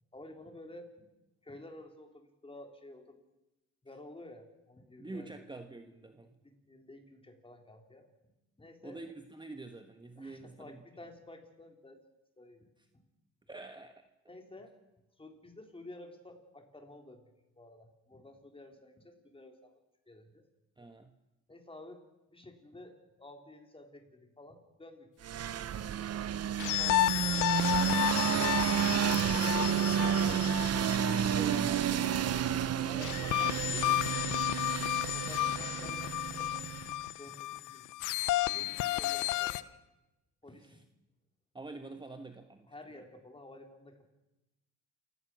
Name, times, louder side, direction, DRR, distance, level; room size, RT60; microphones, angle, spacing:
voice 1, 0.1-1.1 1.4-3.2 3.8-5.3 6.4-8.1 8.6-9.0 10.2-12.0 12.4-12.7 14.3-14.8 15.2-17.3 17.6-19.7 20.1-20.5 21.5-22.0 22.3-25.1 25.5-25.6 26.8-28.3 28.7-30.5 32.9-34.2 35.1-37.9 38.5-39.8 40.4-40.7 42.7-44.1, left 2 dB, 20° left, 4 dB, 3.7 m, -52 dB
voice 2, 5.0-6.4 8.8-10.8 13.5-14.1 20.8-21.1 31.3-32.6 40.6-40.8 41.5-43.0, right 2 dB, 15° right, 7 dB, 1.4 m, -46 dB
sound 1, 25.2-37.0, right 9 dB, 55° right, 0.9 m, -31 dB
sound 2, 26.6-32.2 33.0-39.6, left 15 dB, 90° left, 0.8 m, -32 dB
28.5 x 17.0 x 6.2 m, 0.98 s
cardioid pair, 90°, 30 cm